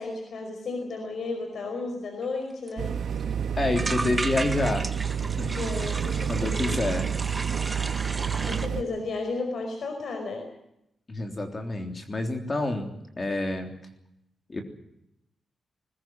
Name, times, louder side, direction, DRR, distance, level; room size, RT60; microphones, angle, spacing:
voice 1, 0.0-2.9 5.5-6.8 8.5-10.5, left 3 dB, 60° left, 4 dB, 5.0 m, -33 dB
sound 1, 2.4-2.5 2.7-2.8 3.0-3.3 3.8-8.7, right 2 dB, 20° right, 1.6 m, -34 dB
sound 2, 2.8-8.8, right 7 dB, 75° right, 1.4 m, -29 dB
voice 2, 3.6-4.9 5.2-5.7 6.3-7.1 11.1-13.8 14.5-14.6, left 2 dB, 25° left, 5 dB, 3.5 m, -28 dB
20.5 x 20.5 x 7.7 m, 0.81 s
wide cardioid pair, 165°, 0 cm